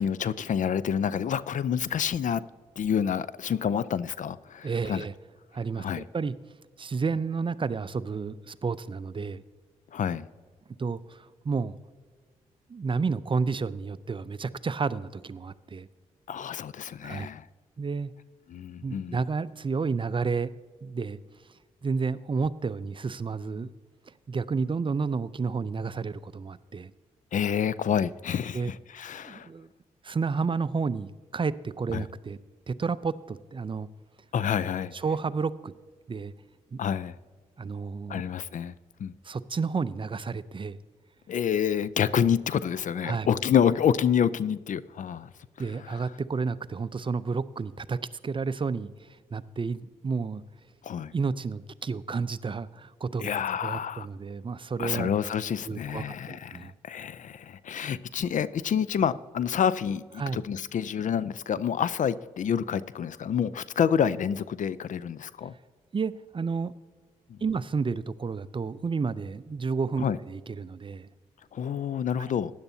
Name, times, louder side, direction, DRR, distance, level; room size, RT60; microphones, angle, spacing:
voice 1, 0.0-2.4 2.8-5.1 5.8-6.0 9.9-10.3 16.3-17.5 18.5-19.2 27.3-29.5 31.9-32.0 34.3-34.9 36.8-37.2 38.1-38.7 39.0-39.1 41.3-45.3 45.6-46.1 50.8-51.1 53.2-54.1 54.8-65.5 67.3-67.4 70.0-70.2 71.5-72.5, left 8 dB, 55° left, 0.5 m, -28 dB
voice 2, 4.6-5.1 5.5-6.3 6.8-9.4 10.8-11.8 12.7-15.9 17.0-17.3 17.8-18.1 18.8-20.5 20.8-21.2 21.8-23.7 24.3-26.9 28.5-28.7 29.2-29.7 30.0-32.4 32.7-33.9 34.9-35.7 36.1-36.3 36.7-36.8 37.6-38.2 39.2-40.8 43.0-43.3 45.6-48.0 48.2-50.4 51.1-53.3 53.6-55.1 55.7-56.7 60.2-60.4 65.9-66.7 67.4-71.1, right 5 dB, 35° right, 0.5 m, -31 dB
15.5 x 10.5 x 2.8 m
supercardioid pair, 45°, 15 cm